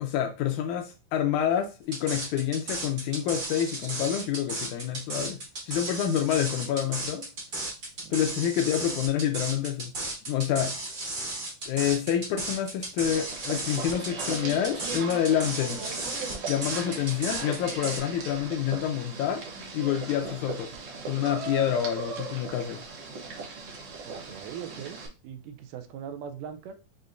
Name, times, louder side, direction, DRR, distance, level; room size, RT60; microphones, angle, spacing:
voice 1, 0.0-5.4 5.7-7.2 8.1-9.9 10.3-10.7 11.7-15.8 16.5-19.4 19.7-20.7 21.1-22.8, left 10 dB, 80° left, 4 dB, 1.9 m, -27 dB
sound 1, 1.9-18.0, right 2 dB, 45° right, 1.0 m, -34 dB
voice 2, 8.0-8.4 24.1-26.7, right 8 dB, 85° right, 7 dB, 2.2 m, -41 dB
sound 2, 13.0-25.1, right 4 dB, 65° right, 1.4 m, -38 dB
6.7 x 2.7 x 2.5 m, 0.30 s
omnidirectional pair, 3.7 m